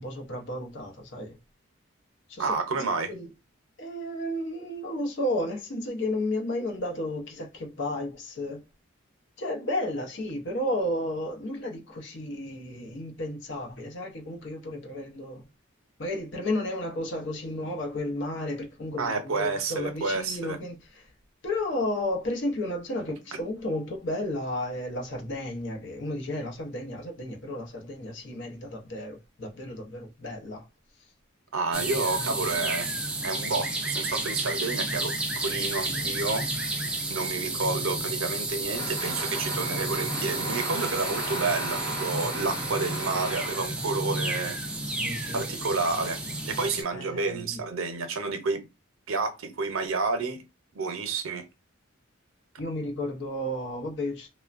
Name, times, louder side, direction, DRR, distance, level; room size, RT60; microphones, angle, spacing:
voice 1, 0.0-1.4 2.3-2.6 3.1-3.3 3.8-8.6 9.4-15.4 16.0-21.1 21.4-30.7 31.9-32.5 44.9-45.5 46.9-47.6 52.6-54.3, left 1 dB, 60° left, 0.6 m, -33 dB
voice 2, 2.4-3.1 19.0-20.6 31.5-32.9 33.2-36.7 37.1-44.6 45.3-46.2 46.5-48.7 49.1-50.4 50.7-51.4, right 4 dB, 85° right, 0.6 m, -30 dB
sound 1, 31.7-46.8, right 2 dB, 5° right, 0.3 m, -31 dB
sound 2, 38.7-44.5, right 1 dB, 20° left, 0.8 m, -36 dB
3.1 x 2.1 x 2.4 m
head